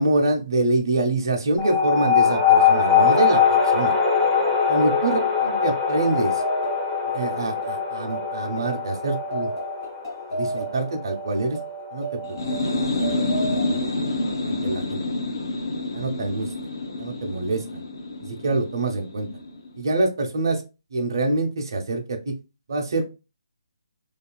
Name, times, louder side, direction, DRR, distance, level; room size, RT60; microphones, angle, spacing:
voice 1, 0.0-3.9 4.7-6.4 7.1-9.5 10.3-11.6 11.9-12.4 13.5-13.8 14.5-15.0 15.9-16.5 17.0-17.8 18.2-19.3 19.8-20.6 20.9-22.3 22.7-23.1, right 2 dB, 60° right, 3 dB, 0.6 m, -25 dB
sound 1, 1.6-12.5, left 6 dB, 5° left, 0.5 m, -22 dB
sound 2, 5.8-14.8, right 3 dB, 45° left, 1.2 m, -34 dB
sound 3, 12.2-19.8, left 2 dB, 60° left, 0.5 m, -28 dB
2.7 x 2.4 x 2.2 m, 0.29 s
hypercardioid pair, 155°, 2 cm